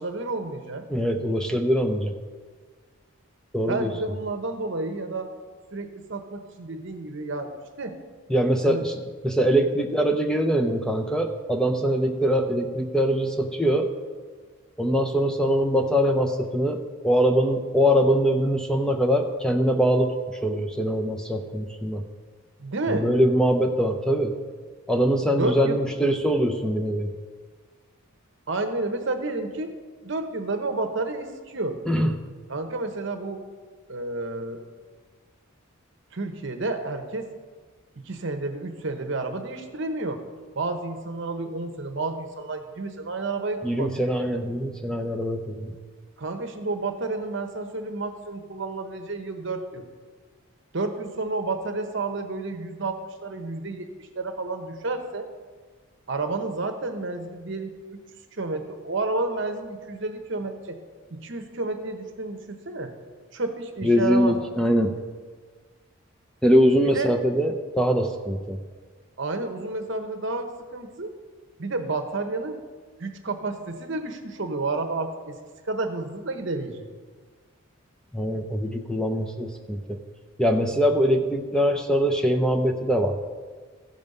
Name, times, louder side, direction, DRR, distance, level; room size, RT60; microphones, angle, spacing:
voice 1, 0.0-0.8 3.7-5.3 5.7-7.5 7.8-8.0 8.6-8.9 22.6-23.1 25.4-25.8 28.5-29.7 30.0-31.8 32.5-33.4 33.9-34.6 36.1-37.3 38.0-40.2 40.5-44.0 46.2-49.8 50.7-55.3 56.1-58.0 58.3-60.8 61.1-62.9 63.3-64.3 66.8-67.1 69.2-71.1 71.6-72.6 73.0-75.4 75.6-76.9, right 3 dB, 55° right, 6 dB, 1.0 m, -30 dB
voice 2, 0.9-2.1 3.5-3.9 8.3-8.9 9.2-13.9 14.8-22.0 22.9-24.4 24.9-27.1 31.9-32.1 43.6-45.8 63.8-65.0 66.4-68.6 78.1-80.0 80.4-83.2, equal, 5° left, 3 dB, 0.5 m, -23 dB
15.0 x 5.3 x 5.4 m, 1.5 s
head